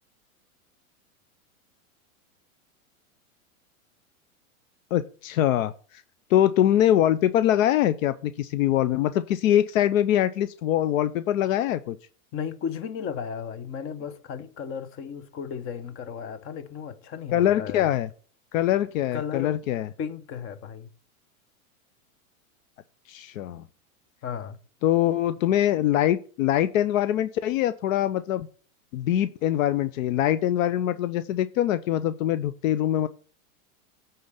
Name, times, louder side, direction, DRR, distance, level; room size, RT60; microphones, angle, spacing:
voice 1, 4.9-5.7 6.3-12.0 17.3-18.1 18.5-19.9 23.1-23.6 24.8-28.5 28.9-33.1, left 12 dB, 65° left, 0.6 m, -23 dB
voice 2, 12.3-17.9 19.1-19.5 20.0-20.9 24.2-24.6, left 7 dB, 30° left, 0.8 m, -35 dB
9.4 x 3.9 x 5.5 m
supercardioid pair, 135°, 42 cm